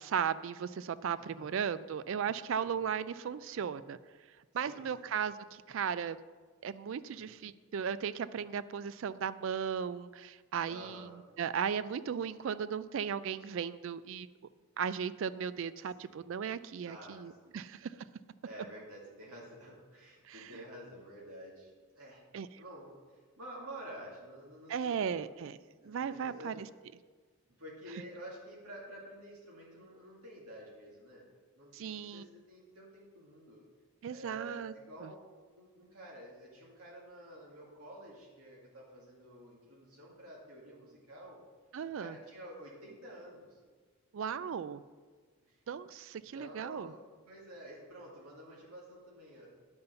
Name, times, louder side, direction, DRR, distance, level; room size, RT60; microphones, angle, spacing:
voice 1, 0.0-4.0 4.5-6.2 6.6-11.1 11.4-14.3 14.8-18.1 20.2-20.6 22.3-22.5 24.7-25.6 25.9-26.7 31.7-32.2 34.0-34.7 35.0-35.1 41.7-42.2 44.1-44.8 45.7-46.9, right 7 dB, 60° right, 15 dB, 0.3 m, -36 dB
voice 2, 1.2-1.5 2.6-2.8 4.6-5.1 7.1-7.3 10.7-11.1 15.8-16.3 16.8-17.6 18.4-22.2 22.5-25.2 25.8-26.5 27.6-31.3 31.5-33.6 34.1-41.4 42.0-43.6 45.5-45.6 46.1-49.6, right 1 dB, 85° right, -4 dB, 2.2 m, -50 dB
9.7 x 5.3 x 6.8 m, 1.4 s
head